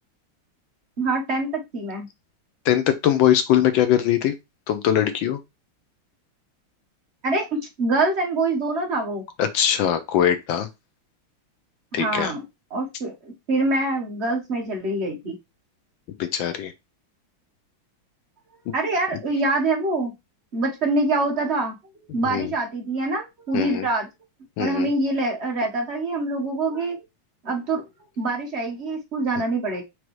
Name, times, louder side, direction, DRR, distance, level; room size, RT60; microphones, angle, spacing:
voice 1, 1.0-2.1 7.2-9.2 11.9-12.4 12.7-15.4 18.7-20.1 20.5-24.1 24.6-27.0 27.4-27.8 28.2-29.8, right 2 dB, 40° right, 1.1 m, -25 dB
voice 2, 2.6-4.3 4.7-5.4 9.4-10.7 11.9-12.3 16.2-16.7 18.7-18.8 22.2-22.5 23.5-23.9 24.6-24.9, left 10 dB, 75° left, 1.3 m, -21 dB
5.1 x 3.1 x 3.1 m
omnidirectional pair, 2.3 m